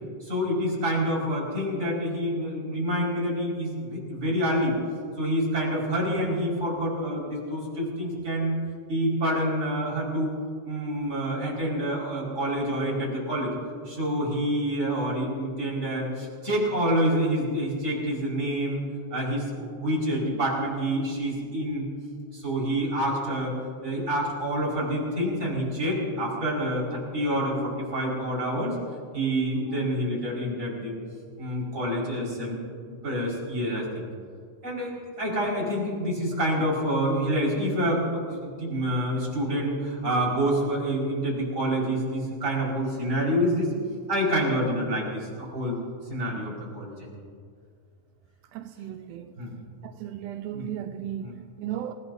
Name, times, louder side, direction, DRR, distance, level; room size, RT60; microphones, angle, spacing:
voice 1, 0.2-4.7 5.2-8.5 8.9-10.4 10.6-13.5 13.9-18.8 19.1-21.8 22.3-23.5 23.8-28.8 29.1-31.0 31.4-32.6 32.9-34.1 34.6-43.7 44.1-45.8 46.1-47.1 49.4-49.6 50.5-50.7 51.2-51.3, equal, 25° right, 5.3 m, -27 dB
voice 2, 48.5-49.4 49.8-51.9, right 11 dB, 90° right, 2.3 m, -36 dB
28.5 x 17.0 x 2.7 m
omnidirectional pair, 3.5 m